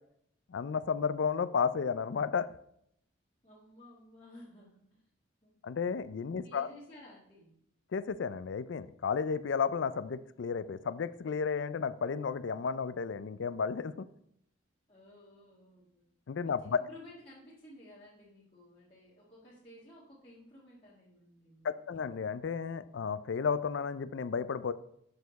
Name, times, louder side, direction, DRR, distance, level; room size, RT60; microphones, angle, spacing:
voice 1, 0.5-2.5 5.6-6.7 7.9-14.1 16.3-16.8 21.6-24.7, left 6 dB, 70° left, 15 dB, 0.4 m, -33 dB
voice 2, 3.4-5.0 5.4-5.6 6.4-7.6 14.9-16.1 16.4-21.9, left 1 dB, 30° left, -8 dB, 1.6 m, -55 dB
6.8 x 6.4 x 4.0 m, 0.72 s
head